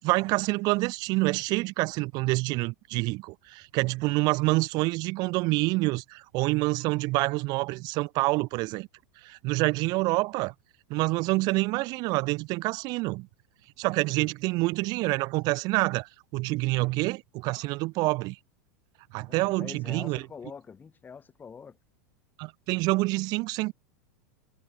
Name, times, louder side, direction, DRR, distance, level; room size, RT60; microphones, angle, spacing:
voice 1, 0.0-8.9 9.2-10.5 10.9-13.3 13.8-18.4 19.1-20.2 22.4-23.7, right 23 dB, 50° right, 1.0 m, -27 dB
voice 2, 16.7-17.1 19.2-21.8, left 6 dB, 20° left, 7.7 m, -45 dB
hypercardioid pair, 120°, 9 cm